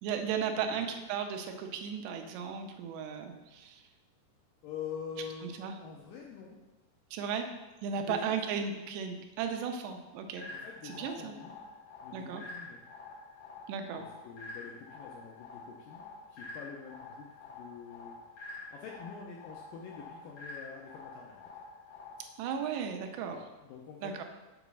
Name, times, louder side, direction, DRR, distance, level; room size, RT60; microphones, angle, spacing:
voice 1, 0.0-3.8 5.4-5.7 7.1-7.5 7.8-10.5 10.8-11.4 12.1-12.4 13.7-14.0 22.4-23.4 24.0-24.2, right 7 dB, 85° right, 5 dB, 2.9 m, -35 dB
voice 2, 4.6-5.5 5.8-6.6 7.9-8.7 10.5-11.6 12.0-12.8 14.0-18.2 18.5-21.4 23.3-24.2, left 6 dB, 85° left, -1 dB, 1.9 m, -46 dB
sound 1, 10.4-22.4, left 3 dB, 65° left, 1.5 m, -48 dB
7.7 x 4.0 x 6.1 m, 1.1 s
omnidirectional pair, 4.8 m